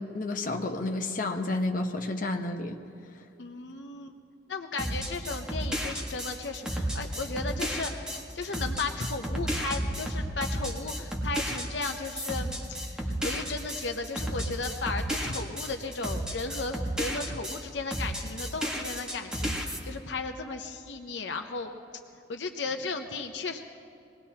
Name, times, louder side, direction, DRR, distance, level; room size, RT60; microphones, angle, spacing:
voice 1, 0.0-2.8, left 2 dB, 50° left, 3 dB, 1.0 m, -30 dB
voice 2, 3.4-4.2 4.5-8.1 8.3-12.6 12.9-21.7 22.3-23.6, left 3 dB, 75° left, 5 dB, 0.8 m, -35 dB
sound 1, 4.8-17.6 17.9-19.8, equal, 5° right, 1.4 m, -32 dB
23.0 x 19.0 x 2.9 m, 2.5 s
head